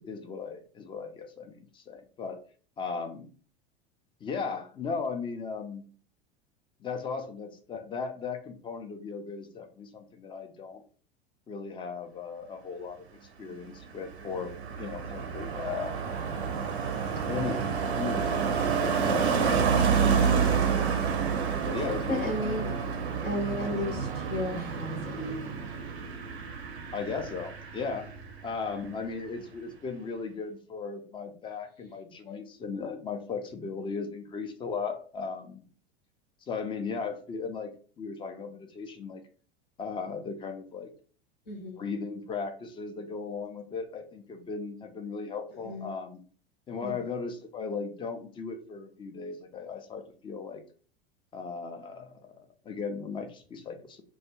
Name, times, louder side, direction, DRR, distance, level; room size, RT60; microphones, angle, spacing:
voice 1, 0.0-2.4 2.8-3.3 4.2-5.8 6.8-10.8 11.5-13.0 13.4-14.5 14.8-16.0 17.3-19.6 20.1-20.5 21.6-22.3 26.9-28.1 28.4-35.6 36.5-37.7 38.0-39.2 39.8-40.9 41.8-46.2 46.7-50.6 51.3-52.1 52.7-54.0, left 5 dB, 15° left, 7 dB, 0.3 m, -36 dB
Car passing by, 13.7-28.4 28.7-29.0, right 6 dB, 80° right, 0.5 m, -29 dB
voice 2, 21.8-22.8 23.2-25.5 41.5-41.8 45.5-45.9 46.8-47.1, left 1 dB, 85° left, -2 dB, 0.9 m, -34 dB
2.3 x 2.2 x 2.9 m, 0.41 s
hypercardioid pair, 85°, 31 cm